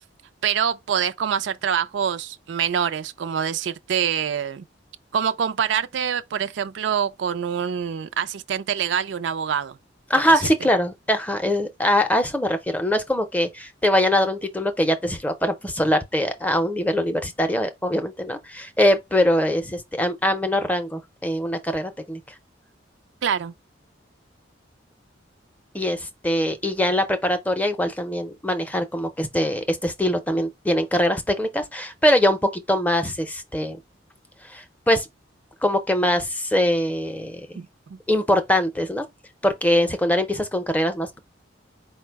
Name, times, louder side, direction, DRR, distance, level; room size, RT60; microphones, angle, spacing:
voice 1, 0.4-4.6 5.1-9.8 23.2-23.5 37.5-38.0, right 8 dB, 75° right, 0.4 m, -25 dB
voice 2, 10.1-22.2 25.7-33.8 34.5-35.1 35.6-37.6 38.1-39.1 39.4-41.2, left 1 dB, 10° left, 0.6 m, -22 dB
4.6 x 2.1 x 4.5 m
head